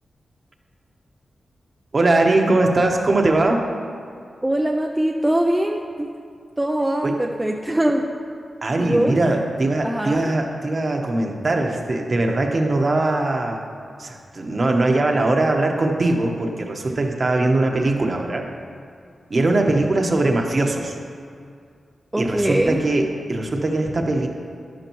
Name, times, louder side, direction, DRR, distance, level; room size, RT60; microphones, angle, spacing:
voice 1, 1.9-3.7 7.0-7.2 8.6-13.7 14.0-18.4 19.3-21.0 22.2-24.3, right 2 dB, 40° right, 2 dB, 1.1 m, -21 dB
voice 2, 4.4-6.1 6.6-8.1 8.8-9.2 9.8-10.3 22.1-22.8, right 1 dB, 10° right, 1 dB, 0.5 m, -22 dB
12.5 x 11.0 x 3.1 m, 2.3 s
wide cardioid pair, 120°, 0 cm